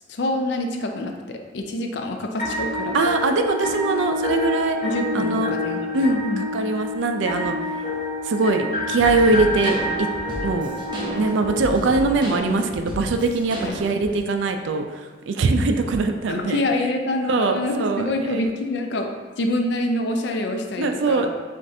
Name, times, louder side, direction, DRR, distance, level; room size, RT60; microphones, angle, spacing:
voice 1, 0.1-3.0 4.8-6.4 13.6-13.8 16.3-19.1 19.4-21.3, left 2 dB, 60° left, 4 dB, 0.4 m, -26 dB
sound 1, 2.4-12.4, left 2 dB, 40° left, 1.0 m, -28 dB
voice 2, 2.9-4.8 5.1-5.5 5.9-7.6 8.2-10.1 10.4-10.7 11.2-16.6 17.3-18.5 20.8-21.3, right 3 dB, 75° right, 6 dB, 0.4 m, -22 dB
sound 2, 9.0-14.1, equal, 25° right, 0.7 m, -32 dB
7.2 x 2.5 x 2.6 m, 1.4 s
head